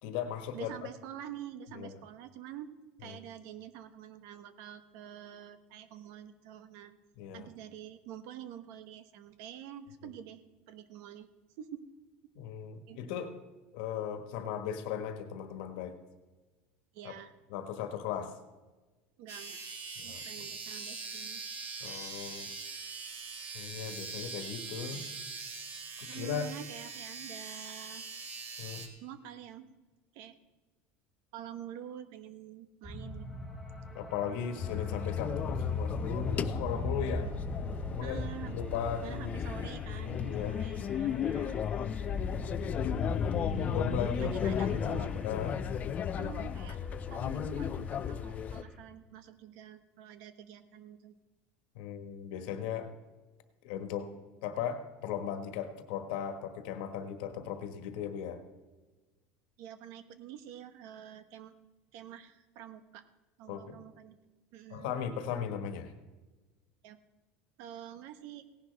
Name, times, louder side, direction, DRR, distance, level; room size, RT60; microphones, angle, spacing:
voice 1, 0.0-0.7 1.7-2.0 3.0-3.2 7.2-7.5 12.3-13.3 13.7-16.0 17.0-17.1 17.5-18.3 20.0-20.2 21.8-22.5 23.5-25.0 26.0-26.5 28.6-28.9 33.9-37.3 37.9-38.3 38.5-39.1 40.1-40.6 42.3-43.0 43.3-44.3 45.2-45.5 51.7-53.0 53.6-54.1 54.4-58.4 63.5-63.8 64.7-65.9, left 8 dB, 80° left, 7 dB, 1.4 m, -37 dB
voice 2, 0.5-2.7 3.0-6.9 7.3-11.3 11.6-11.8 12.2-12.3 12.9-13.0 16.9-17.3 19.2-19.6 20.0-21.4 26.1-28.1 29.0-29.7 30.1-30.4 31.3-33.5 38.0-38.6 39.0-41.6 44.1-45.2 46.2-46.8 47.1-51.2 59.6-61.5 61.9-63.0 63.4-64.1 64.5-65.0 66.8-67.0 67.6-68.5, right 10 dB, 70° right, 11 dB, 0.9 m, -47 dB
sound 1, 19.3-28.9, right 4 dB, 40° right, 1.8 m, -42 dB
sound 2, 32.8-48.8, left 1 dB, ahead, 1.6 m, -41 dB
sound 3, 34.6-48.6, left 9 dB, 30° left, 0.4 m, -34 dB
17.0 x 10.5 x 3.4 m, 1.2 s
cardioid pair, 140°, 5 cm